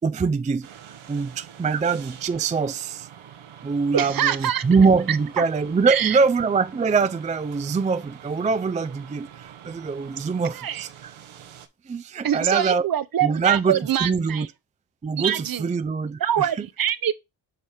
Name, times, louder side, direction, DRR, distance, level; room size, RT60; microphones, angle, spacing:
voice 1, 0.0-0.7 1.1-3.1 3.6-11.1 11.9-12.9 13.2-14.5 15.0-16.5, right 5 dB, 15° right, 0.3 m, -23 dB
sound 1, 0.6-11.7, right 9 dB, 70° right, 1.0 m, -45 dB
voice 2, 3.9-4.6 5.1-5.4 5.9-6.2 10.5-10.9 12.2-14.5 15.2-15.7 16.2-17.1, right 10 dB, 45° right, 0.7 m, -24 dB
6.7 x 3.3 x 4.3 m
cardioid pair, 70°, 50 cm